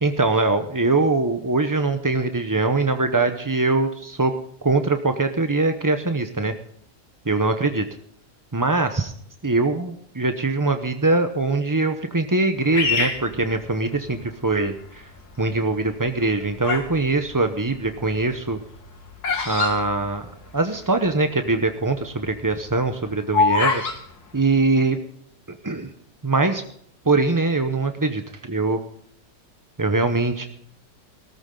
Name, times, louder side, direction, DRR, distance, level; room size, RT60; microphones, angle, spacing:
voice 1, 0.0-4.3 4.6-6.5 7.3-7.8 8.5-9.1 9.4-15.0 15.4-18.6 19.5-20.3 20.5-23.8 24.3-25.0 25.5-25.9 26.2-26.6 27.1-28.2 28.5-28.8 29.8-30.4, right 3 dB, 20° right, 7 dB, 0.5 m, -22 dB
Bird vocalization bird call bird song, 12.7-14.2 14.9-15.3 16.1-17.0 17.3-20.7 21.0-21.1 21.3-21.6 22.1-24.0, left 4 dB, 70° left, 2.7 m, -25 dB
17.5 x 13.5 x 3.8 m, 0.67 s
omnidirectional pair, 1.7 m